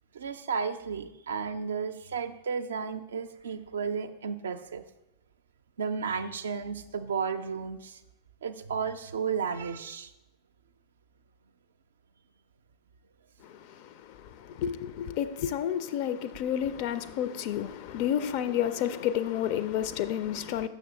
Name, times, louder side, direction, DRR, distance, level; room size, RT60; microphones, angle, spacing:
voice 1, 0.1-4.8 5.8-8.0 8.4-10.1, right 6 dB, 65° right, 0.4 m, -33 dB
voice 2, 13.4-20.7, left 10 dB, 45° left, 0.4 m, -31 dB
6.1 x 6.0 x 3.9 m
figure-of-eight pair, 90°, 0 cm